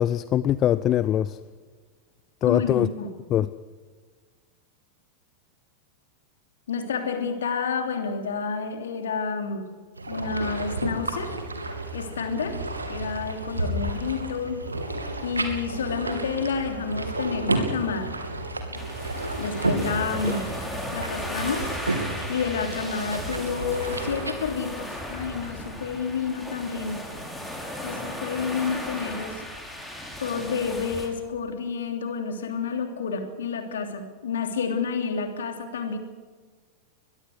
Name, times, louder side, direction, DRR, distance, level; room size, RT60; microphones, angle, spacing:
voice 1, 0.0-1.4 2.4-2.9 3.3-3.5, left 11 dB, 30° left, 16 dB, 0.6 m, -22 dB
voice 2, 2.4-3.1 6.7-9.7 10.1-11.3 11.9-12.6 12.9-14.6 15.2-18.1 19.4-20.5 20.9-21.7 22.3-27.0 27.8-29.5 30.2-36.0, left 5 dB, 65° left, 6 dB, 3.1 m, -29 dB
sound 1, 10.0-24.3, right 2 dB, 80° right, 2.7 m, -31 dB
sound 2, 18.7-31.1, left 1 dB, 5° left, 5.8 m, -36 dB
22.5 x 22.0 x 6.5 m, 1.4 s
figure-of-eight pair, 90°, 0 cm